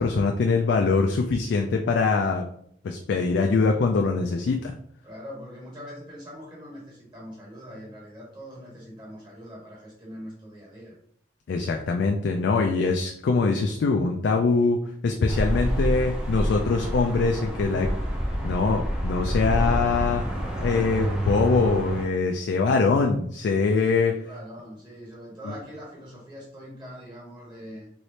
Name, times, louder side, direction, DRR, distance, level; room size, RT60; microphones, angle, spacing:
voice 1, 0.0-2.4 2.8-4.7 11.5-17.9 18.4-20.2 20.6-24.1 25.4-25.5, left 4 dB, 65° left, 2 dB, 0.3 m, -23 dB
voice 2, 5.0-10.9 24.1-27.9, equal, 25° right, -5 dB, 1.3 m, -42 dB
sound 1, 15.3-22.1, equal, 5° right, 0.5 m, -28 dB
3.2 x 3.0 x 2.7 m, 0.68 s
head